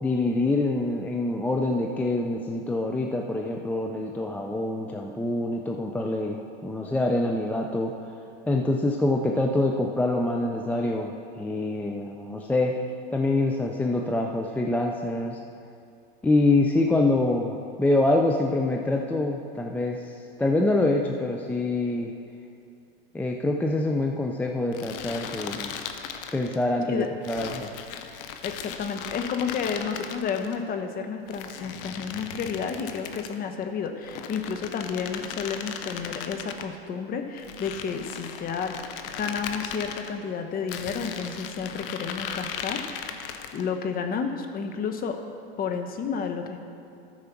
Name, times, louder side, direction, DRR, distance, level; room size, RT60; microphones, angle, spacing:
voice 1, 0.0-6.4 6.6-7.9 8.5-12.7 13.1-15.4 16.2-22.1 23.1-25.8 26.3-27.7, left 2 dB, 5° left, 1 dB, 0.4 m, -25 dB
sound 1, 24.7-26.6 27.2-30.6 31.3-33.4 34.0-36.7 37.4-40.1 40.7-43.7, left 8 dB, 65° left, 0.8 m, -37 dB
voice 2, 28.4-38.7 39.2-43.1 43.5-45.2 45.6-46.6, left 6 dB, 30° left, 5 dB, 1.0 m, -31 dB
13.0 x 4.9 x 5.9 m, 2.6 s
hypercardioid pair, 110°, 31 cm